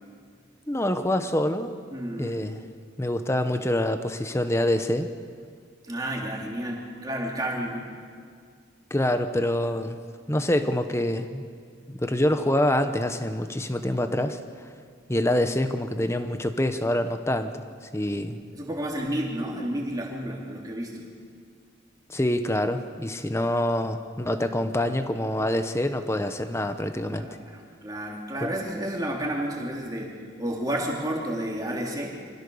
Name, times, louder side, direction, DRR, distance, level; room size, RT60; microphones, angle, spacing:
voice 1, 0.7-1.7 2.2-2.6 3.0-5.1 8.9-10.0 10.3-11.4 11.9-14.7 15.1-17.6 17.9-18.4 22.1-27.3 28.4-28.5, left 1 dB, 15° left, 9 dB, 0.9 m, -26 dB
voice 2, 1.9-2.4 5.9-7.8 18.5-21.0 27.1-32.2, right 1 dB, 20° right, -2 dB, 3.2 m, -31 dB
25.0 x 16.0 x 7.0 m, 2.1 s
head